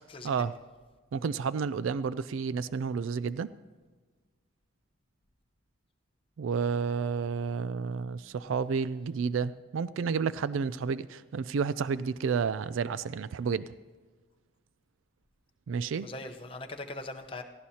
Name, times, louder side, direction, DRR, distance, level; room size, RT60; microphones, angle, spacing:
voice 1, 1.1-3.5 6.4-13.7 15.7-16.1, right 5 dB, 85° right, 16 dB, 0.4 m, -31 dB
voice 2, 16.0-17.4, left 2 dB, 25° left, 4 dB, 0.8 m, -41 dB
17.5 x 15.0 x 2.8 m, 1.4 s
head